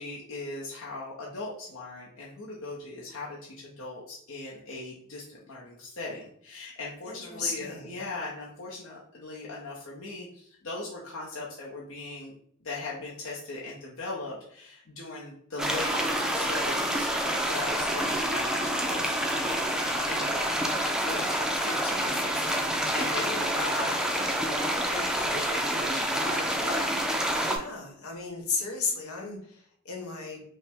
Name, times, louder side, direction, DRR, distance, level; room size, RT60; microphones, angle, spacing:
voice 1, 0.0-12.3 12.6-20.6 21.0-26.8, left 3 dB, 65° left, -5 dB, 0.8 m, -39 dB
voice 2, 7.0-7.9 27.3-30.4, left 4 dB, 85° left, 0 dB, 1.2 m, -34 dB
sound 1, 15.6-27.6, right 1 dB, 5° right, 0.4 m, -28 dB
5.3 x 2.1 x 3.5 m, 0.65 s
head